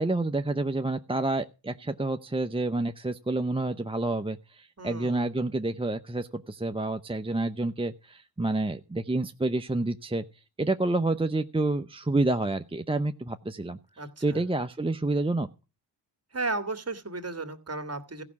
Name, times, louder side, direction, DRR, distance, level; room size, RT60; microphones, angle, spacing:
voice 1, 0.0-15.5, right 2 dB, 10° right, 7 dB, 0.8 m, -29 dB
voice 2, 4.8-5.3 14.0-14.4 16.3-18.2, right 3 dB, 30° right, 9 dB, 2.2 m, -34 dB
15.0 x 5.9 x 8.4 m, 0.32 s
cardioid pair, 60°, 46 cm